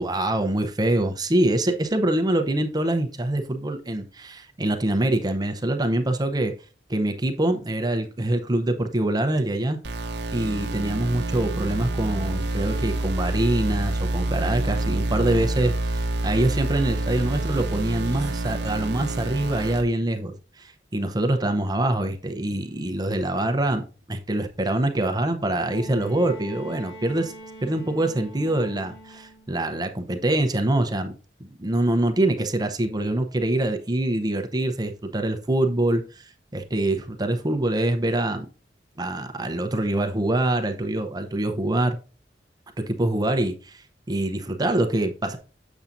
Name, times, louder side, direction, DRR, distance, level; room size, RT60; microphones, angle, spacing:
voice 1, 0.0-6.5 6.9-9.8 10.3-27.3 27.6-31.1 31.4-38.5 39.0-42.0 42.8-45.4, right 1 dB, 20° right, 0.6 m, -25 dB
sound 1, 9.8-19.8, right 2 dB, 65° right, 0.8 m, -27 dB
Bowed string instrument, 25.5-29.6 30.8-30.9, right 1 dB, 60° left, 2.3 m, -43 dB
7.1 x 7.0 x 2.6 m
head